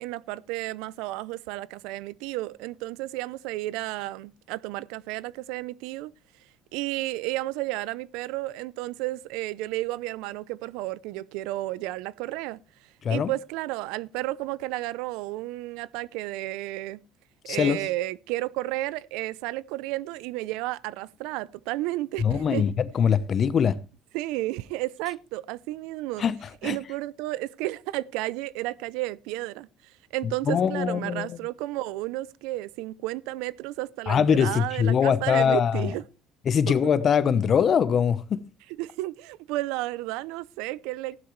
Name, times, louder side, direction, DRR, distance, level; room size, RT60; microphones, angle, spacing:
voice 1, 0.0-6.1 6.7-12.6 13.1-17.0 17.4-22.6 24.1-26.2 26.6-29.7 30.1-36.0 38.8-41.2, right 18 dB, 85° right, 0.5 m, -32 dB
voice 2, 17.5-17.8 22.2-23.8 26.2-26.8 30.5-31.3 34.1-35.9 36.5-38.4, left 7 dB, 45° left, 0.8 m, -23 dB
15.0 x 11.5 x 3.2 m
cardioid pair, 100°, 0 cm